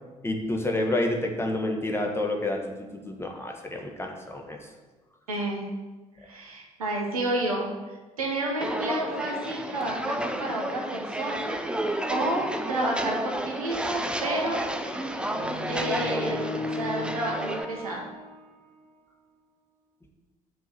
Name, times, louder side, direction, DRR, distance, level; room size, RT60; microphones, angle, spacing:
voice 1, 0.2-2.6 3.0-4.6, left 1 dB, 15° left, 2 dB, 1.5 m, -28 dB
voice 2, 5.3-5.6 6.2-7.7 8.2-11.6 12.1-14.6 15.7-16.4 16.7-18.0, right 1 dB, 80° right, -1 dB, 1.3 m, -30 dB
Walk footsteps, 8.6-17.6, right 1 dB, 5° right, 0.7 m, -31 dB
sound 1, 14.7-18.7, left 3 dB, 35° left, 2.6 m, -36 dB
6.2 x 5.3 x 7.0 m, 1.2 s
figure-of-eight pair, 45°, 18 cm